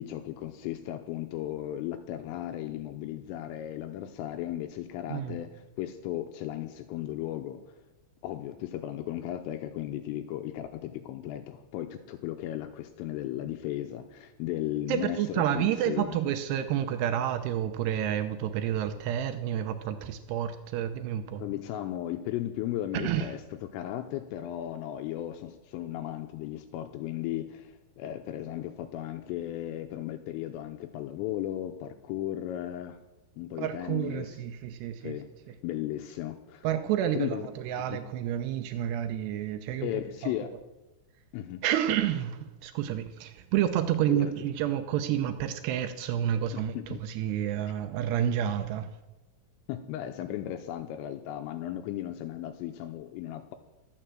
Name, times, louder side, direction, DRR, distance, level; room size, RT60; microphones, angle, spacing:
voice 1, 0.0-7.8 8.2-16.2 21.4-33.0 33.4-34.4 35.0-35.3 35.6-36.7 37.1-37.5 37.8-38.1 39.8-40.6 41.3-41.6 44.1-44.3 46.5-47.0 49.7-53.6, left 12 dB, 80° left, 7 dB, 3.3 m, -36 dB
voice 2, 14.9-21.4 22.9-23.3 33.6-35.2 36.6-39.9 40.2-40.3 41.6-48.9, right 10 dB, 90° right, 8 dB, 2.3 m, -29 dB
14.5 x 12.0 x 7.6 m, 1.0 s
omnidirectional pair, 5.9 m